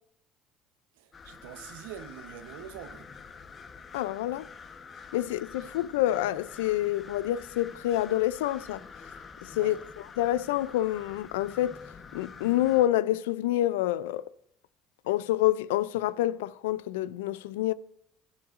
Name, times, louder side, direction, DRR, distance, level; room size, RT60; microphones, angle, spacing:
voice 1, 1.0-3.1 5.6-5.7 9.6-9.8, right 9 dB, 90° right, 0.8 m, -44 dB
sound 1, 1.1-12.9, left 5 dB, 40° left, 1.0 m, -47 dB
voice 2, 3.9-4.5 5.1-8.8 9.4-9.7 10.2-11.8 12.1-14.2 15.1-17.7, left 14 dB, 90° left, 0.3 m, -27 dB
16.0 x 7.1 x 2.5 m
supercardioid pair, 80°, 0 cm